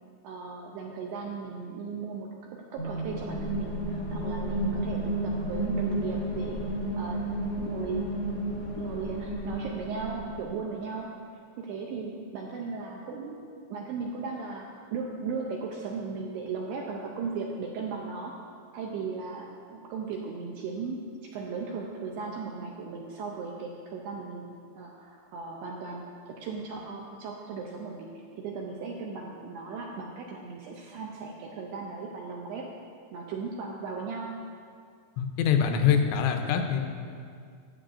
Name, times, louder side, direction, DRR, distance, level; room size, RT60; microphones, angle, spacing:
voice 1, 0.2-2.3 2.7-6.7 7.0-7.2 7.6-8.0 8.5-11.1 11.6-18.3 18.7-21.0 21.3-24.5 24.8-26.0 26.4-32.7 33.1-34.3, right 5 dB, 80° right, -1 dB, 2.4 m, -37 dB
sound 1, 2.8-10.5, right 1 dB, 55° left, 1.2 m, -32 dB
voice 2, 35.2-36.8, left 7 dB, 85° left, 5 dB, 3.0 m, -24 dB
15.0 x 7.9 x 2.5 m, 2.2 s
omnidirectional pair, 5.3 m